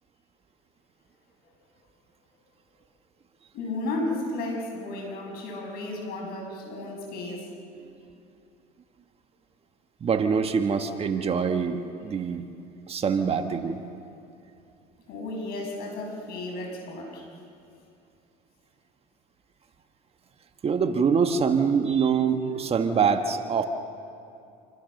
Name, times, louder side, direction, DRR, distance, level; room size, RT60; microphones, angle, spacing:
voice 1, 3.5-7.5 15.1-17.2, left 2 dB, 60° left, 1 dB, 7.4 m, -33 dB
voice 2, 10.0-12.4 12.9-13.8 20.6-23.6, right 6 dB, 35° right, 6 dB, 1.6 m, -24 dB
27.5 x 25.0 x 6.7 m, 2.6 s
supercardioid pair, 105°, 18 cm